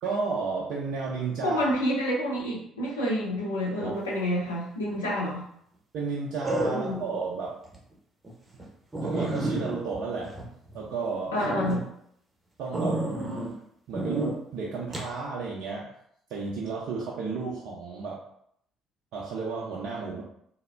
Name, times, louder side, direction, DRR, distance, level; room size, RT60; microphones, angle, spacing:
voice 1, 0.0-1.7 3.8-3.9 5.9-7.5 9.0-10.3 10.7-11.4 12.6-13.0 13.9-15.9 16.3-18.2 19.1-20.2, right 4 dB, 60° right, -4 dB, 0.4 m, -32 dB
voice 2, 1.4-5.4 6.7-7.0 11.3-11.8, equal, 80° left, -5 dB, 0.7 m, -28 dB
sound 1, 4.8-5.2 6.4-7.2 7.7-7.8 8.2-8.3 8.6-8.7 8.9-11.0 11.4-11.8 12.7-13.5 13.9-14.3 14.9-15.1, right 1 dB, 25° right, 0.7 m, -31 dB
3.2 x 2.0 x 2.3 m, 0.70 s
figure-of-eight pair, 50°, 0 cm